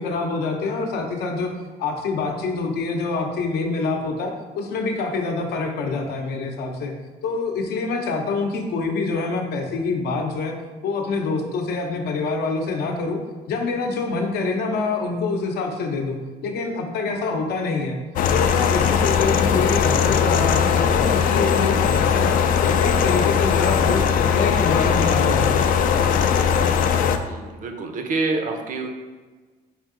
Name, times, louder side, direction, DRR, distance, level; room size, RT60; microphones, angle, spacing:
voice 1, 0.0-1.5 1.8-6.9 7.2-10.6 10.8-13.2 13.5-18.0 18.3-22.3 22.6-24.1 24.3-25.8, left 3 dB, 75° left, 3 dB, 0.7 m, -26 dB
sound 1, 18.2-27.2, left 7 dB, 55° left, 0.4 m, -19 dB
voice 2, 27.3-28.9, right 3 dB, 50° right, 4 dB, 0.7 m, -27 dB
5.0 x 2.7 x 3.7 m, 1.3 s
cardioid pair, 110°, 17 cm